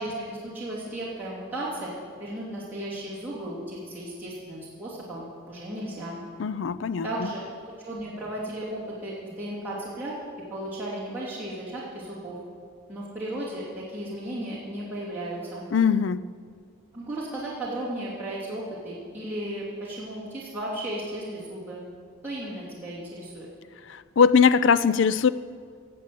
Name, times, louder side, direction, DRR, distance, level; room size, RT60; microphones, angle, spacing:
voice 1, 0.0-1.9 2.2-6.2 7.0-7.4 7.8-10.1 10.5-12.4 12.9-15.7 16.9-21.8 22.2-23.5, right 1 dB, 10° right, -10 dB, 2.8 m, -35 dB
voice 2, 6.4-7.1 15.7-16.2 23.9-25.3, left 6 dB, 60° left, 16 dB, 0.4 m, -21 dB
18.0 x 7.8 x 7.7 m, 2.1 s
head